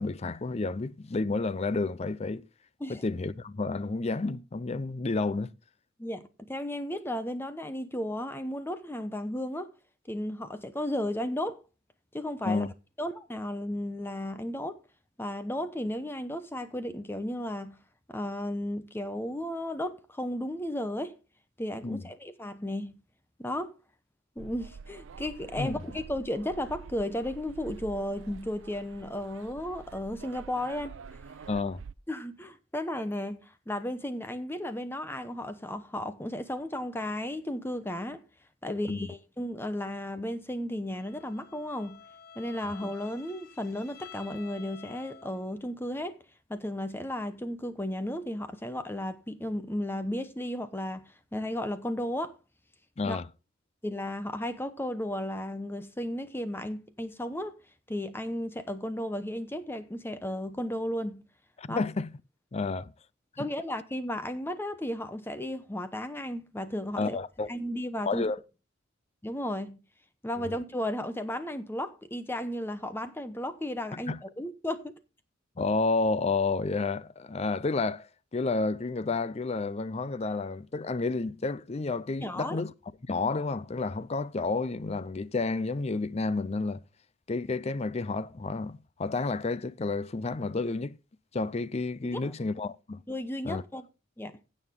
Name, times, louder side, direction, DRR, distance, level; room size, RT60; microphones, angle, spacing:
voice 1, 0.0-2.4 2.9-5.5 12.4-12.7 21.8-22.0 25.6-25.8 31.5-31.8 38.7-39.1 53.0-53.3 61.6-62.1 62.5-62.9 67.0-67.5 68.0-68.4 70.4-70.5 73.9-74.2 75.6-82.7 83.1-86.8 87.3-91.0 91.3-93.0 93.4-93.6, left 3 dB, 30° left, 0.5 m, -30 dB
voice 2, 6.0-9.7 10.1-11.6 12.1-12.6 13.0-14.8 15.2-17.8 18.1-21.1 21.6-23.0 23.4-23.7 24.4-30.9 32.1-38.2 38.6-42.0 42.4-46.2 46.5-52.4 53.1-53.2 53.8-57.6 57.9-61.2 61.7-61.8 63.4-67.2 67.5-68.3 69.2-69.8 70.2-74.9 82.2-82.6 92.1-92.3 93.1-93.9 94.2-94.4, left 1 dB, 10° left, 0.8 m, -34 dB
sound 1, 24.4-31.9, right 5 dB, 65° right, 0.4 m, -47 dB
Bowed string instrument, 40.9-45.6, left 8 dB, 50° left, 1.1 m, -51 dB
16.5 x 6.4 x 3.7 m
head